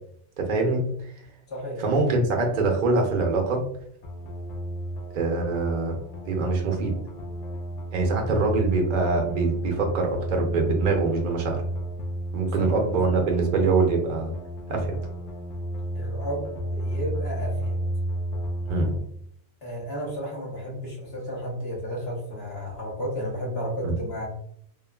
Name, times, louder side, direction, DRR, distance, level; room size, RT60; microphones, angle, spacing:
voice 1, 0.4-0.8 1.8-3.6 5.1-6.0 6.3-6.9 7.9-11.6 12.3-14.3 14.7-15.0 18.7-18.9 23.8-23.9, right 3 dB, 50° right, 2 dB, 0.7 m, -24 dB
voice 2, 1.5-1.8 8.2-8.4 12.6-12.7 15.9-17.8 19.6-24.3, equal, 65° left, -3 dB, 1.3 m, -33 dB
sound 1, 4.0-19.0, right 1 dB, 80° left, 0.9 m, -32 dB
3.0 x 2.2 x 2.2 m, 0.65 s
omnidirectional pair, 1.1 m